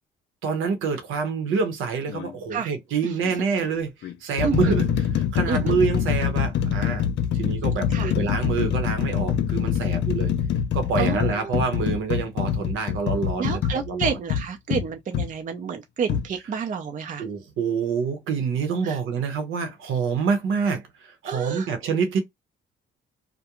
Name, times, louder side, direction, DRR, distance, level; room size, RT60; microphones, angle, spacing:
voice 1, 0.4-7.1 7.3-10.3 10.7-14.2 17.2-22.2, right 5 dB, 85° right, 0.8 m, -27 dB
sound 1, 2.1-2.3 3.2-3.4 4.0-15.3 16.1-16.3, left 8 dB, 65° left, 0.4 m, -25 dB
voice 2, 11.0-11.6 13.4-17.2 18.8-19.0 21.3-21.7, right 6 dB, 40° right, 0.5 m, -30 dB
2.4 x 2.1 x 2.9 m
cardioid pair, 90°, 20 cm